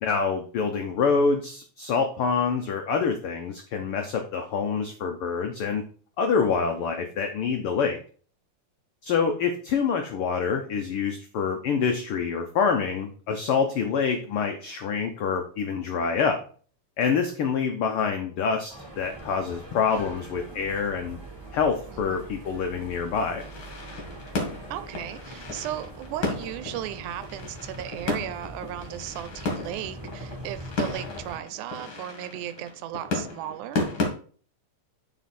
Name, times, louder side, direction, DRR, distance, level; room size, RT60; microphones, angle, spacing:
voice 1, 0.0-5.8 6.2-8.0 9.0-16.4 17.0-21.2 21.5-23.4, left 5 dB, 80° left, 4 dB, 1.2 m, -26 dB
sound 1, 18.7-31.4, right 1 dB, 10° right, 3.1 m, -43 dB
voice 2, 21.9-22.2 24.7-33.8, right 12 dB, 85° right, 12 dB, 2.1 m, -36 dB
sound 2, 23.4-34.1, left 3 dB, 45° left, 2.3 m, -34 dB
9.3 x 4.8 x 4.2 m, 0.43 s
omnidirectional pair, 3.5 m